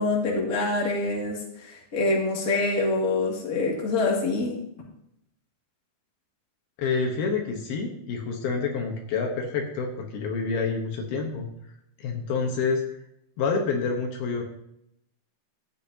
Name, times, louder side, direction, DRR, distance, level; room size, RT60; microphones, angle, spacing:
voice 1, 0.0-4.6, left 3 dB, 30° left, -3 dB, 2.1 m, -25 dB
voice 2, 6.8-11.5 12.0-12.8 13.4-14.4, left 4 dB, 70° left, 2 dB, 2.9 m, -28 dB
14.0 x 8.7 x 2.8 m, 0.77 s
omnidirectional pair, 4.7 m